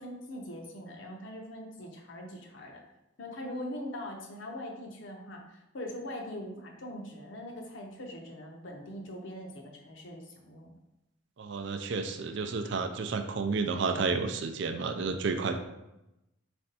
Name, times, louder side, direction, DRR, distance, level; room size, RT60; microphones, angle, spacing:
voice 1, 0.0-2.8 3.2-10.7, left 1 dB, 65° left, 1 dB, 0.7 m, -42 dB
voice 2, 11.4-15.6, right 4 dB, 60° right, 8 dB, 0.4 m, -31 dB
4.3 x 2.6 x 4.0 m, 0.91 s
head